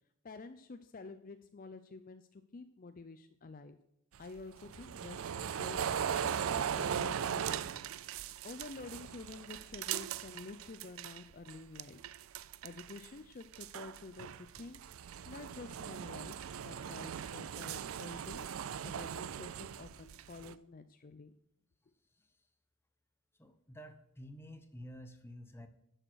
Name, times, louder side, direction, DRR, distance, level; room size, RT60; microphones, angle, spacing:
voice 1, 0.2-3.8 4.2-7.9 8.2-12.0 12.6-18.5 18.8-21.3, left 3 dB, 40° left, 10 dB, 0.5 m, -50 dB
sound 1, 4.1-11.2 11.5-13.1 13.4-20.5, right 8 dB, 80° right, 0.4 m, -39 dB
voice 2, 23.4-25.7, equal, 10° left, 7 dB, 1.0 m, -50 dB
11.0 x 6.6 x 6.3 m, 0.77 s
head